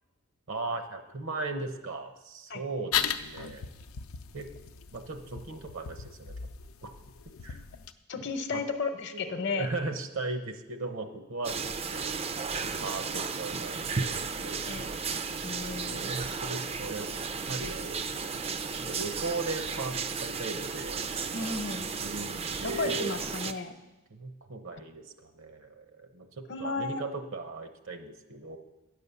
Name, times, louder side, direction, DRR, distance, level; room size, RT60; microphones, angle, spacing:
voice 1, 0.5-3.6 4.3-4.5 4.9-6.5 6.8-6.9 7.4-7.6 8.2-8.6 9.1-12.1 12.8-15.0 15.7-17.1 17.5-18.4 18.7-21.1 22.0-23.1 24.1-28.6, right 3 dB, 65° right, 7 dB, 0.9 m, -38 dB
sound 1, 2.9-7.9, left 8 dB, 80° left, 0.5 m, -36 dB
voice 2, 8.1-9.7 14.7-14.9 15.4-16.1 21.3-21.9 22.6-23.7 26.5-27.0, left 4 dB, 55° left, 8 dB, 0.8 m, -33 dB
sound 2, 11.4-23.5, right 5 dB, 30° right, 0.4 m, -34 dB
9.2 x 6.8 x 6.9 m, 1.1 s
head